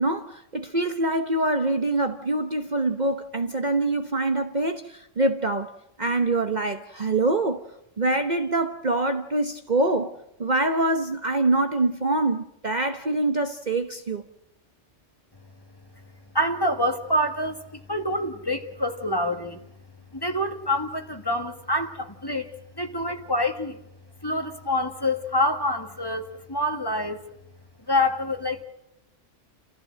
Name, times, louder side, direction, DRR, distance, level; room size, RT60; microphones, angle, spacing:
voice 1, 0.0-5.7 6.0-7.6 8.0-10.1 10.4-14.2, right 2 dB, 40° right, 1.2 m, -25 dB
voice 2, 16.3-19.6 20.1-22.5 22.8-23.8 24.2-27.3 27.9-28.6, left 1 dB, 20° left, 1.8 m, -26 dB
29.5 x 15.0 x 7.7 m
omnidirectional pair, 1.3 m